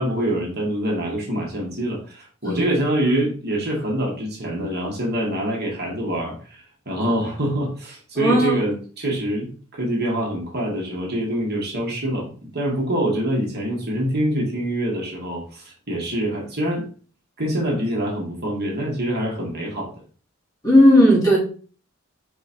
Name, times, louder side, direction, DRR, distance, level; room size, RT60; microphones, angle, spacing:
voice 1, 0.0-16.9 17.4-19.9, right 1 dB, 50° right, -1 dB, 1.9 m, -25 dB
voice 2, 8.1-8.5 20.6-21.4, equal, 20° left, -6 dB, 3.2 m, -15 dB
5.0 x 4.6 x 4.5 m, 0.40 s
head